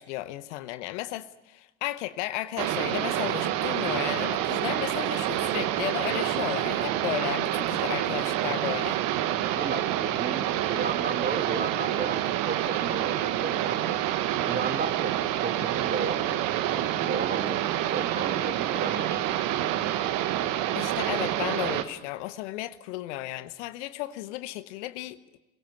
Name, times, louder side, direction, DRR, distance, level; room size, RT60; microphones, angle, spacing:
voice 1, 0.0-9.0 20.7-25.2, left 16 dB, 70° left, 1.0 m, -34 dB
sound 1, 2.6-21.8, right 12 dB, 60° right, 1.6 m, -27 dB
voice 2, 9.5-13.9 14.5-19.5, right 5 dB, 25° right, 2.9 m, -34 dB
23.0 x 17.5 x 9.4 m
hypercardioid pair, 65°, 37 cm